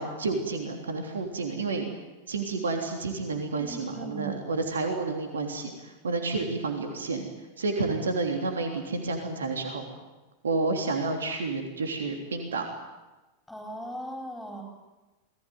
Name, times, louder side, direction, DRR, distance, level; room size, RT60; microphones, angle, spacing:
voice 1, 0.0-1.8 2.3-7.3 7.6-9.8 10.4-12.7, right 3 dB, 70° right, 4 dB, 3.3 m, -30 dB
voice 2, 3.6-4.4 13.5-14.6, right 2 dB, ahead, 2 dB, 4.5 m, -38 dB
27.5 x 20.0 x 9.5 m, 1.1 s
figure-of-eight pair, 90°, 0 cm